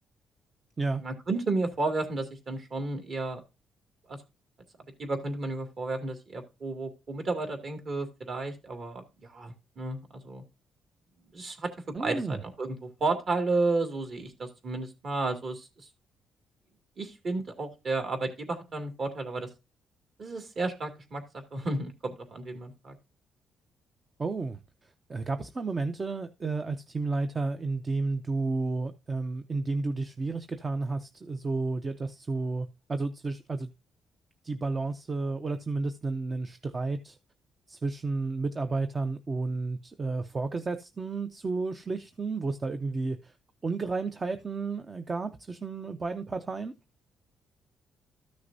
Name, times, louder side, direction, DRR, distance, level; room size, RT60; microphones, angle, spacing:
voice 1, 1.0-3.4 4.1-4.2 5.0-10.4 11.3-15.7 17.0-19.5 20.2-22.9, right 3 dB, 45° right, 2.4 m, -32 dB
voice 2, 11.9-12.4 24.2-24.6 25.1-33.7 34.4-37.2 37.7-43.3 43.6-46.7, right 3 dB, 25° right, 0.6 m, -32 dB
13.5 x 6.4 x 2.7 m
cardioid pair, 125°, 0 cm